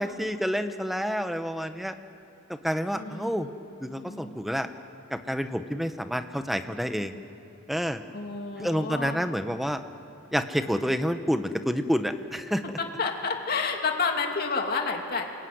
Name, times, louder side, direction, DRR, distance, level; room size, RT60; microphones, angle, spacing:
voice 1, 0.0-1.9 2.5-3.5 3.8-4.7 5.1-7.1 7.7-8.0 8.6-9.8 10.3-12.6, equal, ahead, 8 dB, 1.0 m, -28 dB
voice 2, 2.9-4.4 8.1-9.2 12.8-15.3, left 4 dB, 45° left, 2 dB, 2.8 m, -30 dB
27.0 x 22.0 x 9.5 m, 2.7 s
head